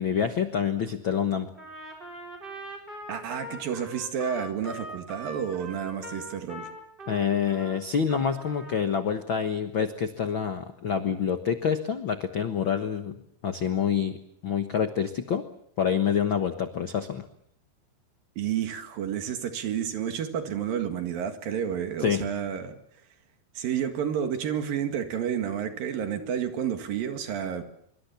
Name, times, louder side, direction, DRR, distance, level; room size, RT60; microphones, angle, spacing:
voice 1, 0.0-1.5 7.1-13.2 13.4-14.2 14.4-15.4 15.8-17.2 22.0-22.3, left 7 dB, 60° left, 7 dB, 1.3 m, -27 dB
Trumpet, 1.5-7.8 8.1-8.8, equal, 15° right, 5.2 m, -42 dB
voice 2, 3.1-6.7 18.4-22.8 23.6-27.6, right 8 dB, 70° right, 6 dB, 3.6 m, -30 dB
26.0 x 24.0 x 7.1 m, 0.70 s
omnidirectional pair, 4.3 m